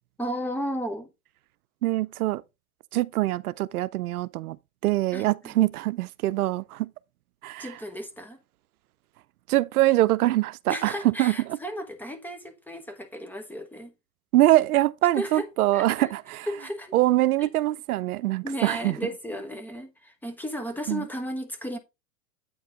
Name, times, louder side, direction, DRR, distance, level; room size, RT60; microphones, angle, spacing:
voice 1, 0.2-1.1 5.1-5.5 7.6-8.4 10.7-13.9 15.1-15.5 15.7-16.1 16.5-17.0 17.4-17.5 18.4-21.8, equal, 5° left, 1.0 m, -34 dB
voice 2, 1.8-2.4 2.9-4.6 4.8-6.9 7.4-7.7 9.5-11.3 14.3-16.5 16.9-19.0 20.9-21.0, right 16 dB, 90° right, 0.6 m, -23 dB
8.7 x 4.8 x 3.6 m
hypercardioid pair, 125°, 43 cm